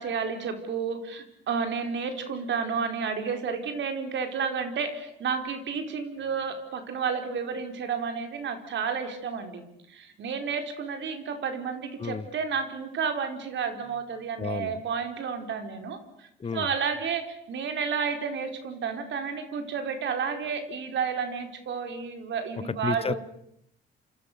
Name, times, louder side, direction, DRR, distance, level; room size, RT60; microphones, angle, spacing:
voice 1, 0.0-23.2, right 6 dB, 70° right, 6 dB, 4.7 m, -31 dB
voice 2, 14.4-14.8 16.4-16.7 22.6-23.1, left 5 dB, 30° left, 16 dB, 1.3 m, -31 dB
28.5 x 26.5 x 6.9 m, 0.76 s
cardioid pair, 90°, 20 cm